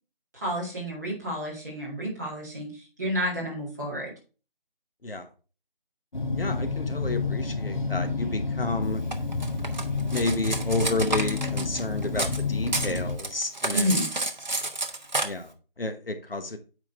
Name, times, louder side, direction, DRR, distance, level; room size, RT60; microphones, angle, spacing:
voice 1, 0.3-4.1 13.7-14.1, equal, 20° right, 2.1 m, -30 dB
sound 1, 6.1-13.2, left 3 dB, 55° left, 1.2 m, -29 dB
voice 2, 6.3-9.0 10.1-13.9 15.2-16.6, left 2 dB, 75° left, 1.2 m, -30 dB
Cutlery silverware, 9.1-12.4 12.7-15.3, right 2 dB, 50° right, 1.0 m, -30 dB
9.2 x 3.7 x 4.4 m
figure-of-eight pair, 170°, 29 cm